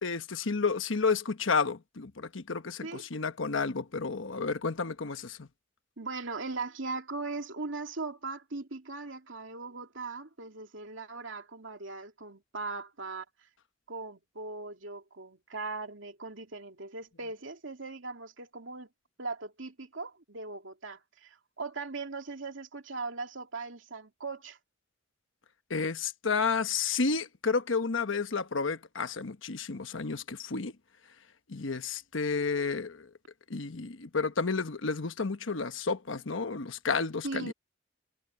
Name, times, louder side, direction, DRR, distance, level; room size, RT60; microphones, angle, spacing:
voice 1, 0.0-5.5 25.7-30.7 31.5-33.1 33.5-37.5, left 4 dB, 90° left, 1.1 m, -31 dB
voice 2, 6.0-13.2 13.9-18.9 19.2-24.6 37.2-37.5, right 3 dB, 85° right, 2.6 m, -39 dB
head